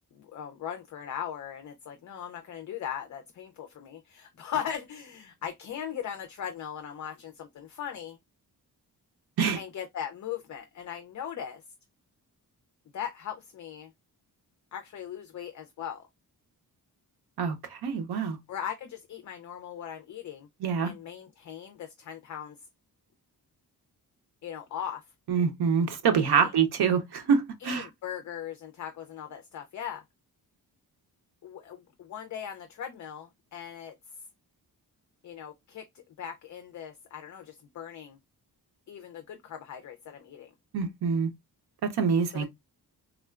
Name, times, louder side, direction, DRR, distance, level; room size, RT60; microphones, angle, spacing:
voice 1, 0.1-8.2 9.6-11.6 12.9-13.9 14.7-16.1 18.5-20.5 20.8-22.6 24.4-25.1 26.2-26.5 27.6-30.0 31.4-33.9 35.2-38.2 38.9-40.5 42.3-42.4, left 9 dB, 50° left, 0.4 m, -39 dB
voice 2, 17.4-18.4 20.6-20.9 25.3-27.9 40.7-41.3 41.8-42.4, right 6 dB, 80° right, 0.8 m, -25 dB
3.6 x 2.2 x 2.2 m
wide cardioid pair, 165°, 39 cm